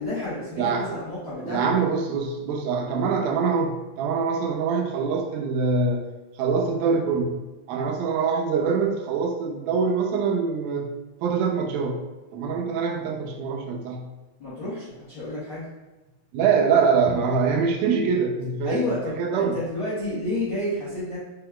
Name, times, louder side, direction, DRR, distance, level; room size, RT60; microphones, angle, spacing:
voice 1, 0.0-1.7 14.4-15.7 18.6-21.2, left 2 dB, 70° left, -12 dB, 1.2 m, -30 dB
voice 2, 0.6-1.0 1.4-6.0 6.4-7.4 7.7-10.9 11.2-12.0 12.3-14.0 16.3-19.6, right 5 dB, 90° right, 3 dB, 2.5 m, -24 dB
5.8 x 3.6 x 2.3 m, 1.1 s
omnidirectional pair, 4.1 m